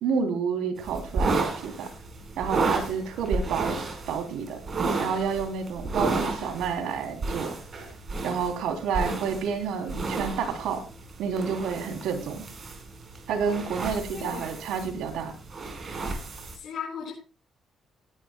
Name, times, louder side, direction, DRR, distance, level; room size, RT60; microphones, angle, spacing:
voice 1, 0.0-1.9 2.4-3.8 4.1-4.6 5.0-7.5 8.2-10.8 11.2-12.4 13.3-15.3, right 6 dB, 85° right, 5 dB, 3.2 m, -29 dB
sound 1, 0.8-16.6, right 3 dB, 45° right, 4.7 m, -32 dB
voice 2, 14.1-14.4 16.5-17.1, left 7 dB, 70° left, -1 dB, 4.7 m, -36 dB
20.0 x 11.0 x 2.3 m, 0.32 s
cardioid pair, 90°, 0 cm